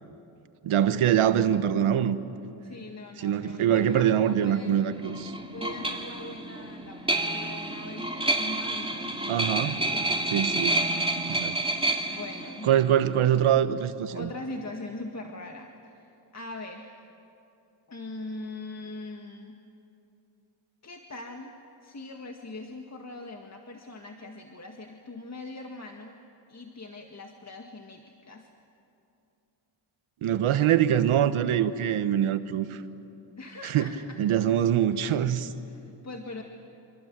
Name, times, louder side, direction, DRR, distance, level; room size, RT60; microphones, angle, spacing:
voice 1, 0.6-2.2 3.2-5.3 9.3-9.7 10.3-10.8 11.3-11.5 12.6-14.3 30.2-32.8 33.6-33.9 34.2-35.5, right 10 dB, 85° right, 11 dB, 1.2 m, -24 dB
voice 2, 2.6-4.8 5.5-10.3 12.1-12.7 14.1-17.0 17.9-19.6 20.8-21.5 21.8-26.2 26.5-28.5 33.4-34.2 35.7-36.4, left 2 dB, 35° left, 3 dB, 1.9 m, -41 dB
sound 1, 3.8-13.5, right 2 dB, 10° right, 2.5 m, -30 dB
28.0 x 26.0 x 7.5 m, 2.8 s
cardioid pair, 80°, 48 cm